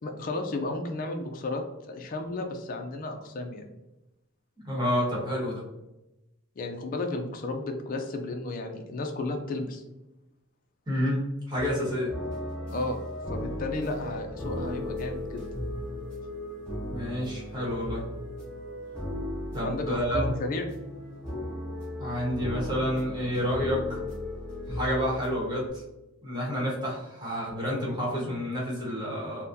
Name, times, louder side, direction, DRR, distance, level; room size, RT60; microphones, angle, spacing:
voice 1, 0.0-3.7 6.6-9.8 12.7-13.0 13.3-15.4 19.6-20.6, left 2 dB, 45° left, 4 dB, 0.4 m, -33 dB
voice 2, 4.6-5.6 10.9-12.1 16.9-18.1 19.5-20.3 22.0-24.0 24.7-25.8 26.2-29.4, equal, 20° right, -4 dB, 1.2 m, -29 dB
sound 1, 11.6-25.7, left 1 dB, 5° left, 1.4 m, -36 dB
4.0 x 2.1 x 2.6 m, 0.95 s
head